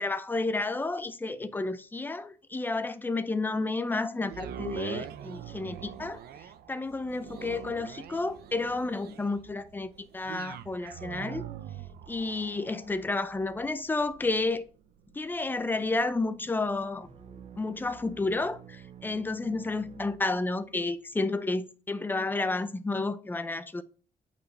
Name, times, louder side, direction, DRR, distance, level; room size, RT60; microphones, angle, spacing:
voice 1, 0.0-6.2 6.7-11.5 12.1-14.7 15.1-17.1 17.6-23.8, left 3 dB, 10° left, 0.5 m, -31 dB
sound 1, 4.2-18.4 19.0-19.1, right 9 dB, 90° right, 0.7 m, -44 dB
sound 2, 17.0-20.9, right 9 dB, 45° right, 0.9 m, -50 dB
8.5 x 4.3 x 3.2 m
cardioid pair, 160°, 16 cm